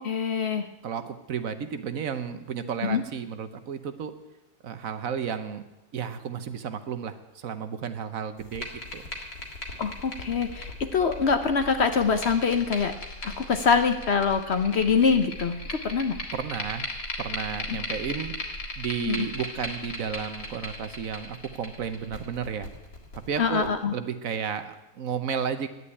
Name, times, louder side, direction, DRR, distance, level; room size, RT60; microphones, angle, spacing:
voice 1, 0.0-0.7 2.8-3.0 9.8-12.9 13.2-16.2 17.7-17.8 19.1-19.3 23.4-23.9, left 5 dB, 55° left, 9 dB, 0.9 m, -24 dB
voice 2, 0.8-4.1 4.6-5.6 5.9-8.7 8.9-9.0 16.3-16.9 17.2-18.3 18.8-22.7 23.3-25.7, right 7 dB, 65° right, 10 dB, 1.3 m, -32 dB
sound 1, 8.4-23.7, left 2 dB, 75° left, 2.5 m, -38 dB
11.0 x 8.5 x 9.7 m, 0.98 s
omnidirectional pair, 1.6 m